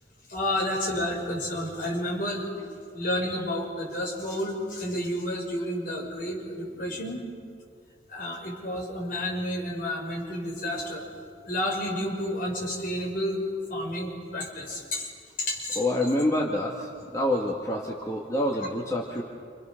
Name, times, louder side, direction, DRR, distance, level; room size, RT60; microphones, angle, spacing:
voice 1, 0.3-2.5 2.9-7.2 8.1-11.0 11.4-13.4 13.7-15.1 15.4-15.8, left 1 dB, 50° left, -1 dB, 6.5 m, -30 dB
voice 2, 15.8-19.2, left 1 dB, 20° left, -2 dB, 2.1 m, -27 dB
29.0 x 28.0 x 6.7 m, 2.2 s
head